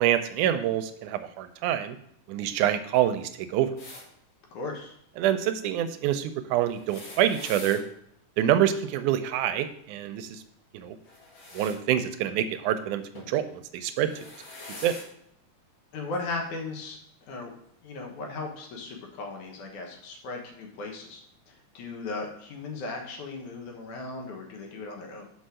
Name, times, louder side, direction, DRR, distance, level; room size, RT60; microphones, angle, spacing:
voice 1, 0.0-2.0 2.3-3.7 5.2-7.8 8.4-10.4 10.7-11.0 11.5-14.1 14.8-15.0, right 11 dB, 80° right, 10 dB, 2.0 m, -26 dB
sound 1, 3.8-4.0 6.7-7.8 11.0-11.8 13.1-13.4 14.0-15.1 16.1-16.2 17.4-17.5, left 2 dB, 45° left, 1.9 m, -44 dB
voice 2, 4.5-4.9 15.9-17.0 17.3-17.5 17.8-21.2 21.5-25.2, left 3 dB, 70° left, 1 dB, 2.6 m, -37 dB
5.8 x 5.5 x 6.3 m, 0.69 s
omnidirectional pair, 3.7 m